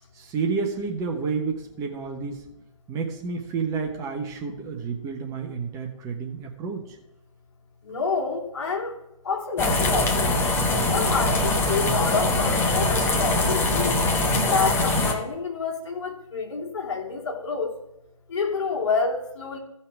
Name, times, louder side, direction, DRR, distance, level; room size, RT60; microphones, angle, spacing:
voice 1, 0.1-2.4 2.9-7.0, right 5 dB, 20° right, 2 dB, 1.1 m, -30 dB
voice 2, 7.9-8.9 9.2-10.4 10.9-14.0 14.5-17.7 18.3-19.6, left 4 dB, 55° left, 0 dB, 2.9 m, -28 dB
sound 1, 9.6-15.1, left 2 dB, 15° left, 1.3 m, -22 dB
15.5 x 5.7 x 4.7 m, 0.85 s
figure-of-eight pair, 135°, 18 cm